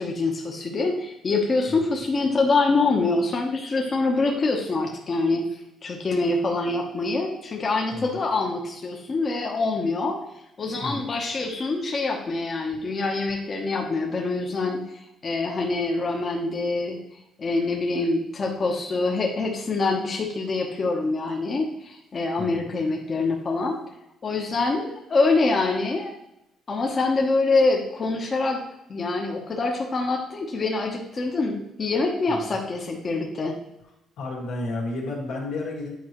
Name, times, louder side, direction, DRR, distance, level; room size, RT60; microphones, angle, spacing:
voice 1, 0.0-10.2 10.6-17.0 17.4-23.8 24.2-26.1 26.7-28.6 28.9-33.5, left 3 dB, 35° left, 0 dB, 0.9 m, -25 dB
voice 2, 34.2-35.9, left 2 dB, 90° left, -2 dB, 2.0 m, -32 dB
8.4 x 4.7 x 3.0 m, 0.86 s
cardioid pair, 120°, 0 cm